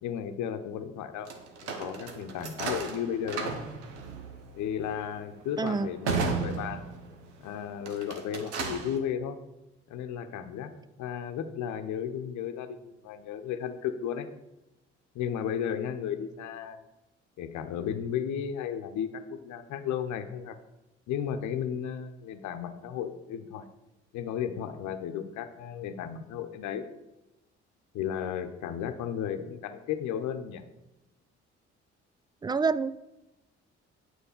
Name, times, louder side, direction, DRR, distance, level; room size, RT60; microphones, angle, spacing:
voice 1, 0.0-1.3 1.6-3.5 4.6-6.8 7.4-9.4 9.9-10.7 11.0-14.3 15.1-16.8 17.4-20.6 21.1-23.7 24.1-26.8 27.9-30.6, left 8 dB, 60° left, 9 dB, 0.9 m, -34 dB
sound 1, 1.3-7.3 7.8-9.0, right 4 dB, 85° right, 1.0 m, -35 dB
voice 2, 5.6-5.9 32.4-32.9, right 4 dB, 15° right, 17 dB, 0.3 m, -27 dB
9.0 x 4.6 x 6.7 m, 0.98 s
figure-of-eight pair, 45°, 34 cm